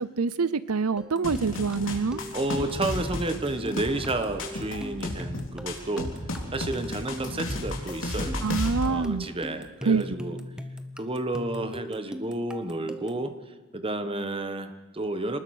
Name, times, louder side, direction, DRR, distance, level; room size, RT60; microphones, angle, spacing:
voice 1, 0.0-2.2 8.4-9.3 9.8-10.0, right 4 dB, 85° right, 16 dB, 0.7 m, -26 dB
sound 1, 1.0-13.3, equal, 5° right, 1.0 m, -40 dB
sound 2, 1.2-8.8, left 1 dB, 60° left, 3.6 m, -33 dB
voice 2, 2.3-6.1 6.5-8.5 8.8-10.4 11.0-13.3 13.7-15.4, right 2 dB, 25° right, 9 dB, 1.4 m, -31 dB
26.5 x 19.5 x 6.6 m, 1.3 s
head